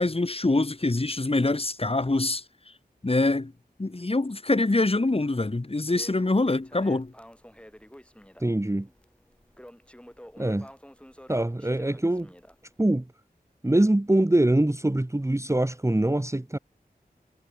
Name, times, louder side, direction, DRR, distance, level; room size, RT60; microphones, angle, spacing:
voice 1, 0.0-2.4 3.0-3.5 3.8-7.1, left 2 dB, 35° left, 2.0 m, -24 dB
Crackle, 5.9-12.9, equal, 5° left, 5.4 m, -50 dB
voice 2, 8.4-8.9 10.4-10.7 11.3-12.3 12.8-13.0 13.6-16.6, right 1 dB, 20° right, 1.3 m, -23 dB
wide cardioid pair, 50°, 16 cm